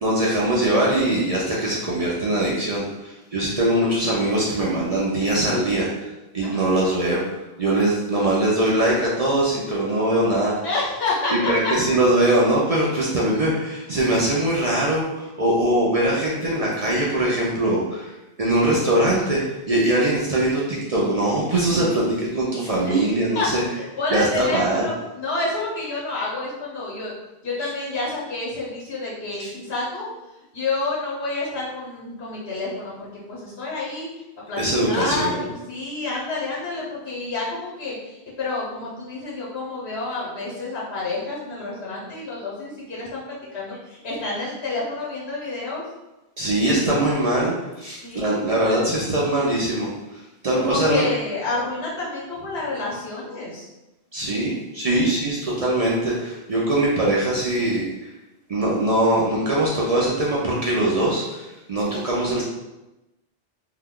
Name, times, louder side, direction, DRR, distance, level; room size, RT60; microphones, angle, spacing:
voice 1, 0.0-5.9 6.3-7.2 7.6-10.5 11.3-18.1 18.4-23.6 24.1-24.9 29.4-29.5 34.6-35.5 46.4-49.9 50.4-51.0 54.1-58.1 58.5-62.4, right 1 dB, 45° right, -5 dB, 0.5 m, -22 dB
voice 2, 10.6-11.7 13.0-13.3 19.7-19.8 22.8-23.0 23.3-23.5 23.7-27.1 27.4-30.1 30.5-34.1 34.5-45.8 48.0-48.8 50.5-53.7 61.9-62.1, left 3 dB, 80° left, -6 dB, 1.4 m, -29 dB
2.8 x 2.3 x 3.6 m, 1.0 s
omnidirectional pair, 1.1 m